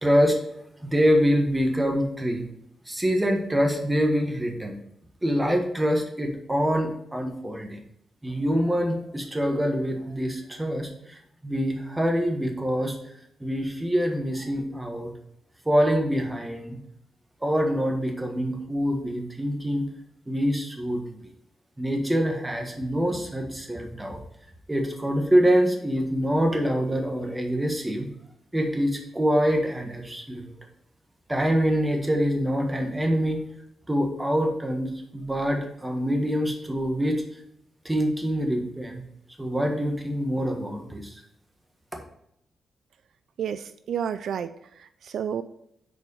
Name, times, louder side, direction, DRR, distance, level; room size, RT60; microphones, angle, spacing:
voice 1, 0.0-0.4 0.8-2.5 2.9-4.7 5.2-7.8 8.2-13.0 13.4-15.1 15.6-16.8 17.4-19.8 20.3-21.2 21.8-24.2 24.7-28.1 28.5-30.5 31.3-33.4 33.9-37.2 37.8-39.0 39.4-41.2, equal, 10° right, 2 dB, 1.5 m, -25 dB
voice 2, 43.4-44.5 44.8-45.4, right 8 dB, 75° right, 11 dB, 0.3 m, -30 dB
6.9 x 4.7 x 5.5 m, 0.74 s
cardioid pair, 110°, 0 cm